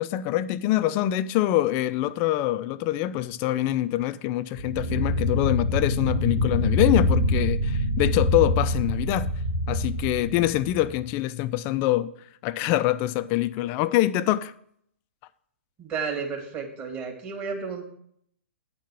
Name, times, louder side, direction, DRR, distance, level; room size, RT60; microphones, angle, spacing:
voice 1, 0.0-9.3 9.7-12.1 12.4-14.5, left 14 dB, 30° left, 0.4 m, -25 dB
sound 1, 4.6-11.0, left 1 dB, 80° right, 3.1 m, -25 dB
voice 2, 15.8-17.8, right 5 dB, 25° right, 2.5 m, -32 dB
9.4 x 4.6 x 7.5 m
figure-of-eight pair, 115°, 7 cm